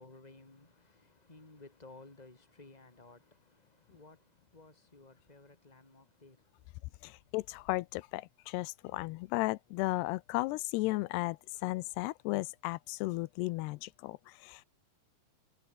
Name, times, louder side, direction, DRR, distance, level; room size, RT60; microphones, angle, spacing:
voice 1, 0.0-6.8, left 3 dB, 10° left, 3.5 m, -56 dB
voice 2, 7.0-14.7, left 21 dB, 85° left, 2.7 m, -35 dB
omnidirectional pair, 4.7 m